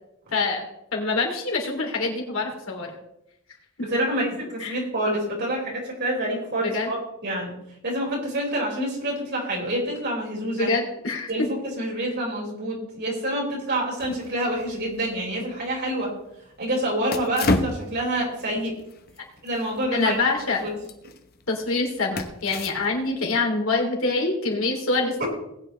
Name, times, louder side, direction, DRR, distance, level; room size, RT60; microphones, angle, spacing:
voice 1, 0.3-0.6 0.9-2.9 4.6-4.8 6.6-6.9 10.6-11.3 19.9-20.6 21.5-25.2, left 3 dB, 75° left, 0 dB, 3.0 m, -25 dB
voice 2, 3.8-7.5 7.8-10.7 11.3-16.1 16.6-18.7 19.4-20.2 20.6-20.7 25.2-25.3, right 1 dB, 55° right, -3 dB, 5.2 m, -27 dB
sound 1, 14.0-23.2, left 2 dB, 50° left, 1.0 m, -33 dB
19.0 x 9.0 x 3.3 m, 0.83 s
head